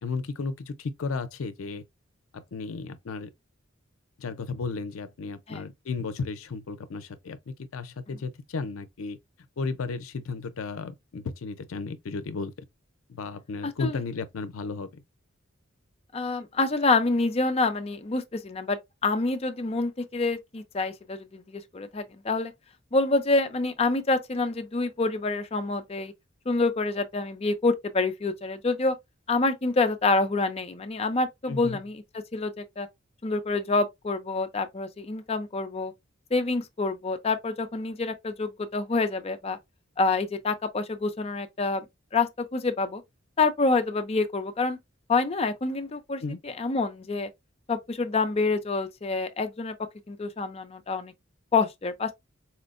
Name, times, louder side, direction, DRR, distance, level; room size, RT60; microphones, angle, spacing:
voice 1, 0.0-1.8 2.3-3.3 4.2-9.2 9.6-12.5 13.1-15.0 31.5-31.8 46.2-46.4, left 4 dB, 85° left, 0.5 m, -34 dB
voice 2, 13.6-14.0 16.1-22.5 22.9-26.1 26.5-29.0 29.3-32.0 32.3-32.9 33.2-35.9 36.3-39.6 40.0-41.9 42.1-43.0 43.4-44.8 45.1-47.3 47.7-49.7 50.1-51.1 51.5-52.1, left 3 dB, 30° left, 0.4 m, -27 dB
4.3 x 2.1 x 2.4 m
head